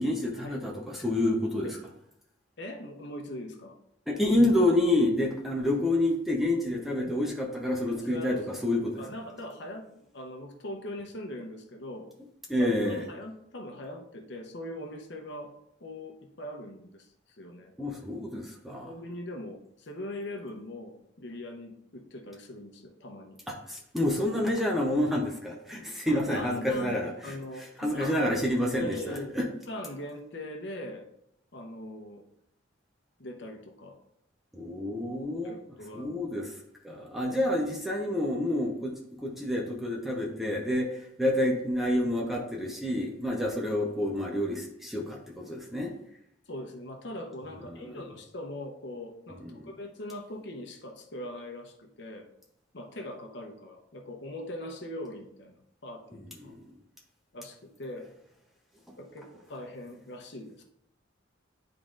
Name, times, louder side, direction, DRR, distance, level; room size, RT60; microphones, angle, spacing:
voice 1, 0.0-1.7 4.1-8.4 8.6-9.0 12.5-13.1 17.8-18.9 23.5-27.3 27.8-29.4 34.5-35.6 35.9-36.5 36.8-45.9 47.7-48.0 49.4-49.7 56.1-56.5, left 1 dB, ahead, -1 dB, 0.7 m, -28 dB
voice 2, 2.6-3.8 7.9-8.6 9.0-9.8 10.1-12.1 12.6-15.5 15.8-17.1 17.4-17.7 18.7-23.4 26.1-28.4 28.8-29.3 29.7-31.0 31.5-32.2 33.2-34.0 35.4-36.3 46.5-52.3 52.7-55.6 55.8-56.5 57.3-58.1 59.0-60.6, left 1 dB, 60° left, 3 dB, 0.8 m, -41 dB
10.0 x 3.8 x 2.5 m, 0.73 s
head